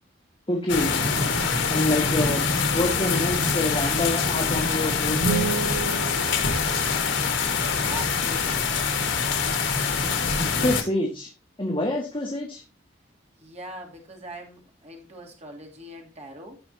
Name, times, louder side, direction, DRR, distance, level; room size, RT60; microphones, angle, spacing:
voice 1, 0.5-1.0 1.7-5.3 10.3-11.3 11.6-12.6, left 1 dB, 30° left, 0 dB, 1.8 m, -27 dB
sound 1, 0.7-10.8, left 5 dB, 75° left, 1.9 m, -24 dB
sound 2, 5.2-7.4, right 5 dB, 85° right, 2.6 m, -30 dB
voice 2, 6.9-7.4 7.9-8.8 13.4-16.6, equal, 35° right, 0 dB, 2.8 m, -41 dB
16.5 x 5.6 x 2.8 m, 0.31 s
head